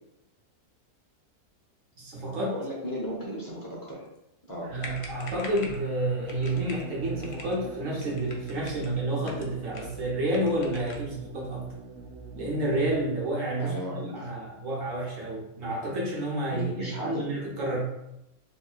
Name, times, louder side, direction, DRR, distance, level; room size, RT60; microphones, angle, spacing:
voice 1, 2.0-2.6 4.7-11.7 12.3-17.8, right 1 dB, 65° right, -4 dB, 1.3 m, -30 dB
voice 2, 2.5-4.0 4.5-4.7 13.6-14.1 16.5-17.2, equal, 20° left, -5 dB, 0.7 m, -35 dB
sound 1, 4.5-4.6 4.8-5.8 6.3-6.9 7.2-7.6 8.0-8.9 9.2-10.0 10.3-11.1, left 3 dB, 90° left, 1.1 m, -44 dB
sound 2, 4.6-13.0, right 4 dB, 80° right, 1.1 m, -44 dB
3.9 x 2.6 x 2.4 m, 0.85 s
omnidirectional pair, 1.6 m